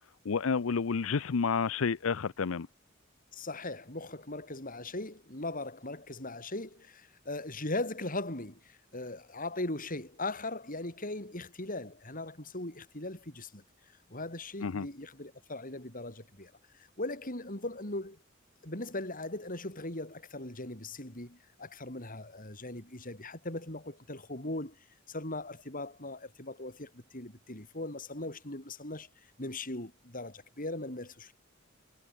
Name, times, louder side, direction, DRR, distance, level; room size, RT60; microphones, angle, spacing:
voice 1, 0.2-2.7 14.6-14.9, left 5 dB, 85° left, 0.6 m, -30 dB
voice 2, 3.3-13.6 14.1-18.2 18.6-24.7 25.1-29.1 29.4-31.3, left 2 dB, 45° left, 7.8 m, -39 dB
head